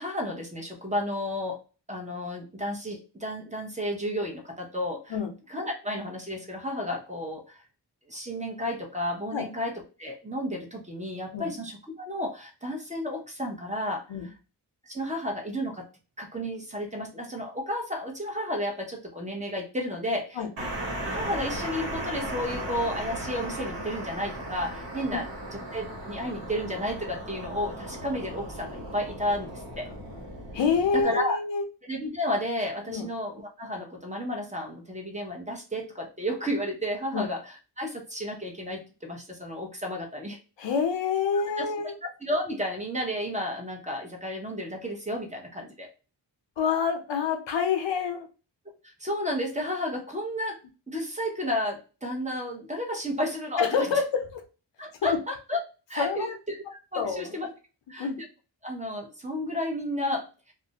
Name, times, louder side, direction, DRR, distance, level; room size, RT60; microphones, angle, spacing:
voice 1, 0.0-1.6 1.9-5.2 5.5-7.6 8.1-14.0 14.9-15.9 16.2-20.4 21.0-29.9 30.9-31.4 31.9-40.4 41.6-41.7 42.2-45.9 48.8-50.6 50.9-53.9 54.8-55.6 55.9-56.6 56.9-57.5 57.9-58.3 58.6-60.5, left 1 dB, 15° right, 1 dB, 0.7 m, -32 dB
sound 1, 20.6-31.0, right 1 dB, 75° right, 1.1 m, -36 dB
voice 2, 30.5-31.6 32.9-33.1 37.1-37.3 40.6-41.9 46.6-48.3 53.6-54.4 55.0-55.2 56.0-56.4 57.0-57.4 58.0-58.2, left 6 dB, 85° left, 5 dB, 0.6 m, -27 dB
2.4 x 2.1 x 2.8 m, 0.33 s
wide cardioid pair, 70°, 43 cm